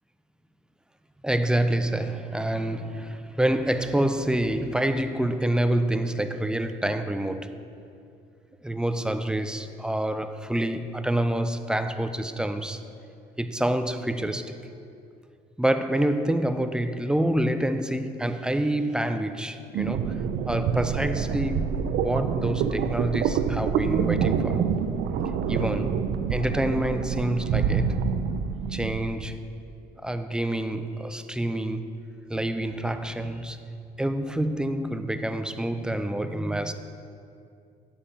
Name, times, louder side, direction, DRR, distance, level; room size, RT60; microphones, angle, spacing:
voice 1, 1.2-7.5 8.6-12.8 13.4-14.6 15.6-24.6 25.5-26.0 26.3-28.0 28.7-29.5 30.0-31.9 32.3-33.6 34.0-36.7, right 1 dB, 5° right, 0.4 m, -27 dB
sound 1, 19.7-29.2, right 7 dB, 75° right, 0.5 m, -26 dB
8.4 x 7.2 x 4.2 m
cardioid pair, 110°, 17 cm